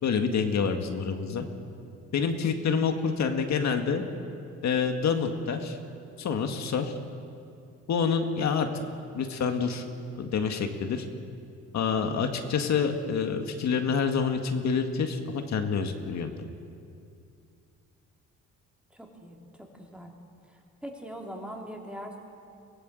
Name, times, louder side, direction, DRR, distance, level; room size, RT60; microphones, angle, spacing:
voice 1, 0.0-1.4 2.1-4.1 4.6-5.8 6.2-6.9 7.9-8.7 9.1-9.8 10.2-11.0 11.7-16.3, left 6 dB, 65° left, 5 dB, 2.0 m, -27 dB
voice 2, 18.9-20.1 20.5-22.2, equal, 5° right, 0 dB, 3.4 m, -42 dB
23.5 x 17.0 x 7.8 m, 2.5 s
cardioid pair, 90°, 30 cm